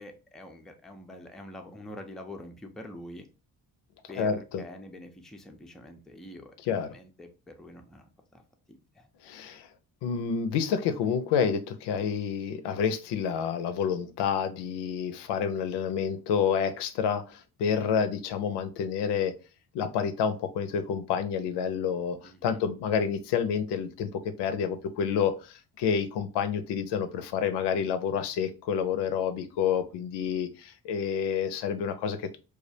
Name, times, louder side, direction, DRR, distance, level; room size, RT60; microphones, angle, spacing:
voice 1, 0.0-3.3 4.1-6.6 6.9-8.1 8.3-8.4 8.7-9.1 22.2-22.6, left 1 dB, ahead, 4 dB, 0.4 m, -45 dB
voice 2, 4.2-4.6 6.7-6.9 9.2-9.7 10.0-19.3 19.7-32.4, left 7 dB, 85° left, 10 dB, 0.5 m, -29 dB
2.3 x 2.1 x 2.6 m, 0.32 s
cardioid pair, 70°, 40 cm